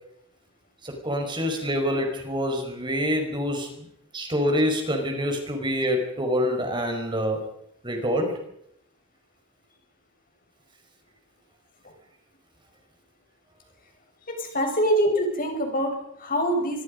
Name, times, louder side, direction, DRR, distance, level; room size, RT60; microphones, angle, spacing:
voice 1, 0.8-3.9 4.1-7.4 7.8-8.4, equal, 20° right, 4 dB, 5.3 m, -26 dB
voice 2, 14.4-16.8, equal, 40° left, 3 dB, 6.3 m, -25 dB
25.0 x 22.5 x 5.4 m, 0.75 s
head